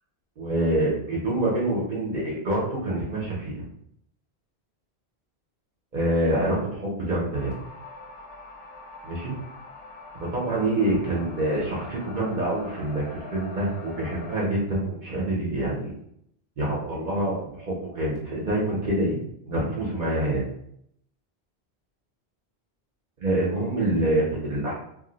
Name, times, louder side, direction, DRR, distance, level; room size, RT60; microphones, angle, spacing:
voice 1, 0.4-3.6 5.9-7.5 9.0-9.3 10.2-15.9 16.6-19.2 19.5-20.4 23.2-24.7, right 1 dB, 50° right, -5 dB, 0.8 m, -26 dB
sound 1, 7.3-14.5, left 2 dB, 45° left, 0.4 m, -43 dB
2.6 x 2.0 x 3.8 m, 0.72 s
omnidirectional pair, 1.1 m